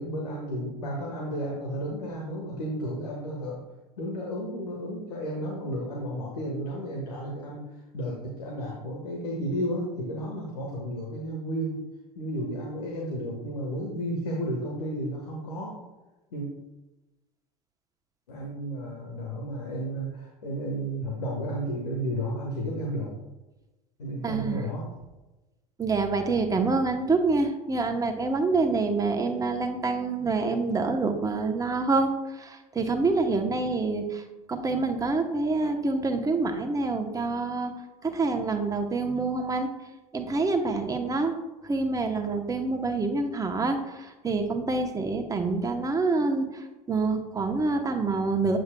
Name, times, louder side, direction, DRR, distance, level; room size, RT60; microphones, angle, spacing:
voice 1, 0.0-3.6 4.0-7.7 7.9-11.8 12.1-15.8 16.3-16.5 18.3-23.1 24.0-24.9, equal, 80° left, -2 dB, 1.3 m, -32 dB
voice 2, 24.2-24.6 25.8-34.2 34.5-37.7 38.0-39.7 40.1-41.4 41.6-48.6, right 3 dB, 20° right, 4 dB, 0.9 m, -26 dB
8.0 x 7.8 x 2.2 m, 1.1 s
hypercardioid pair, 80°, 20 cm